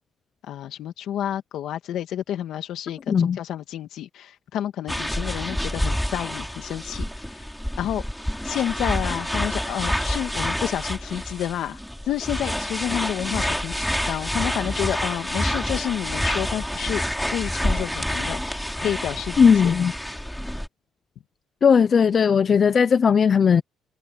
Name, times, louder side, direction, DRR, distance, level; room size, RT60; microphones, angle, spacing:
voice 1, 0.4-7.1 7.8-8.0 8.4-11.8 12.1-17.0 17.3-19.7, left 11 dB, 65° left, 2.3 m, -30 dB
voice 2, 3.1-3.4 19.4-19.9 21.6-23.6, left 6 dB, 35° left, 0.6 m, -17 dB
sound 1, 4.9-20.7, equal, ahead, 3.0 m, -28 dB
cardioid pair, 150°, 0 cm